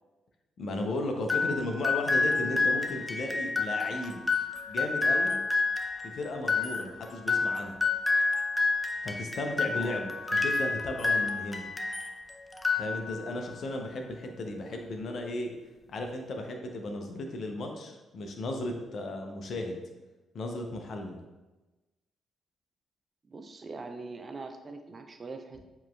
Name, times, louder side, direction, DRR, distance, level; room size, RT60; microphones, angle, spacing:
voice 1, 0.6-4.2 4.7-5.4 6.1-7.8 9.0-10.1 10.4-11.6 12.8-15.5 15.9-19.8 20.3-21.2, left 2 dB, 55° left, 3 dB, 0.6 m, -35 dB
sound 1, 1.3-12.2 12.5-13.4, left 4 dB, 15° left, 0.6 m, -29 dB
voice 2, 23.3-25.6, right 3 dB, 40° right, 6 dB, 0.5 m, -42 dB
7.1 x 3.0 x 2.3 m, 1.1 s
hypercardioid pair, 40°, 0 cm